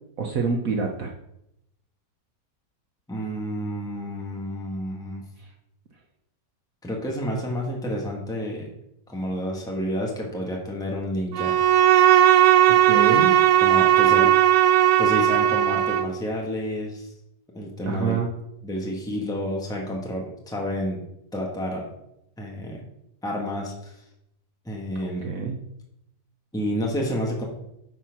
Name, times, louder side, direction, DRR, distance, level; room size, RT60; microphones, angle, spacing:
voice 1, 0.2-1.1 12.9-13.4 17.8-18.3 25.2-25.6, right 5 dB, 55° right, 2 dB, 1.2 m, -26 dB
voice 2, 3.1-5.2 6.8-8.7 9.1-11.6 13.6-14.3 15.0-17.1 17.5-18.2 18.6-21.0 21.3-21.9 22.4-22.8 23.2-23.9 24.6-25.3 26.5-27.4, equal, ahead, -2 dB, 1.5 m, -29 dB
Bowed string instrument, 11.3-16.2, right 11 dB, 80° right, 1.2 m, -17 dB
9.2 x 4.4 x 6.0 m, 0.81 s
omnidirectional pair, 1.9 m